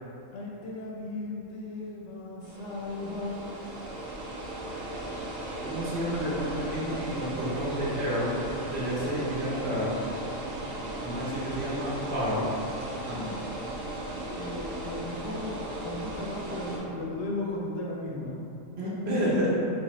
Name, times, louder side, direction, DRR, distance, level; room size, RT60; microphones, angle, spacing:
voice 1, 0.3-3.5 13.2-13.4 14.0-18.4, left 2 dB, 70° left, -4 dB, 0.8 m, -36 dB
sound 1, 2.4-16.8, right 1 dB, 85° right, 1.1 m, -37 dB
voice 2, 5.6-8.4 8.7-10.0 11.0-12.5 13.1-13.3 18.8-19.5, equal, 60° right, -7 dB, 0.9 m, -30 dB
3.4 x 2.1 x 4.0 m, 2.9 s
omnidirectional pair, 1.3 m